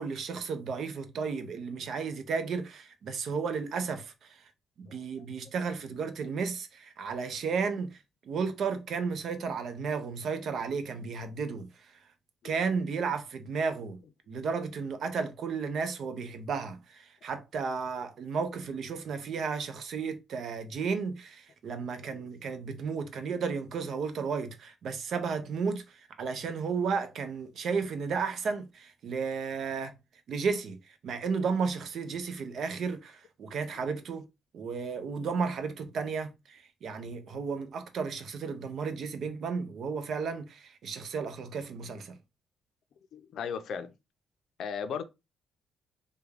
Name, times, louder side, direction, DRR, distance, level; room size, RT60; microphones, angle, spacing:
voice 1, 0.0-4.5 4.8-11.9 12.4-14.0 14.3-29.9 30.3-34.3 34.5-42.2, right 5 dB, 65° right, 0.6 m, -33 dB
voice 2, 4.9-5.3 12.4-12.5 22.1-22.2 37.3-37.4 43.1-43.9 44.6-45.0, left 7 dB, 70° left, 0.4 m, -37 dB
3.4 x 2.2 x 3.4 m
cardioid pair, 95°, 0 cm